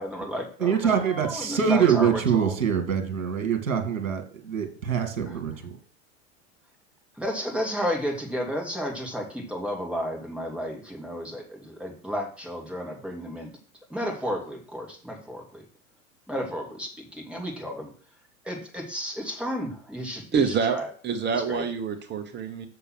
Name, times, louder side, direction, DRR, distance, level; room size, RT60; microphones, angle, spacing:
voice 1, 0.0-2.6 5.3-5.4 7.1-13.5 13.9-15.6 16.3-17.9 18.4-20.9 21.3-21.6, equal, 5° right, 1 dB, 2.6 m, -32 dB
voice 2, 0.6-5.8, right 7 dB, 70° right, 5 dB, 2.0 m, -24 dB
voice 3, 20.3-22.7, right 6 dB, 25° right, 6 dB, 1.1 m, -27 dB
6.8 x 6.7 x 6.2 m, 0.42 s
figure-of-eight pair, 85°, 40 cm